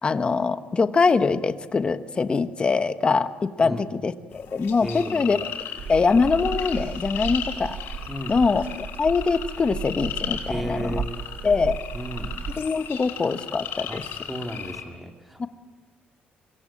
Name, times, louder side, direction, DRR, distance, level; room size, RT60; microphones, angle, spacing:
voice 1, 0.0-5.5 5.9-7.8 8.3-8.6 9.0-11.0 11.4-11.8 12.6-14.0 15.4-15.5, left 4 dB, 30° left, 11 dB, 1.2 m, -23 dB
sound 1, 4.3-14.8, left 9 dB, 90° left, 6.4 m, -36 dB
voice 2, 4.8-5.3 8.1-8.4 10.5-11.2 11.9-12.4 13.9-14.0 14.3-15.5, equal, 5° right, 4 dB, 2.8 m, -33 dB
sound 2, 5.8-12.7, right 6 dB, 55° right, 1.1 m, -35 dB
25.0 x 22.5 x 8.7 m, 1.4 s
cardioid pair, 135°, 4 cm